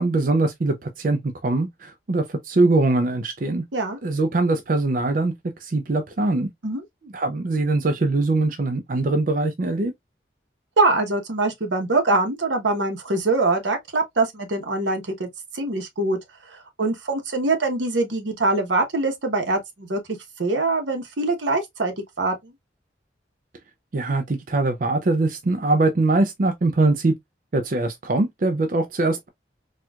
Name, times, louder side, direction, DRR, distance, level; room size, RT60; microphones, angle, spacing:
voice 1, 0.0-3.6 4.0-5.3 5.6-6.5 7.1-9.9 23.9-27.1 27.5-29.3, right 2 dB, 45° right, 0.4 m, -22 dB
voice 2, 10.8-15.3 15.5-16.2 16.5-20.0 20.4-22.5, right 2 dB, 85° right, 1.0 m, -23 dB
4.3 x 2.4 x 2.3 m
head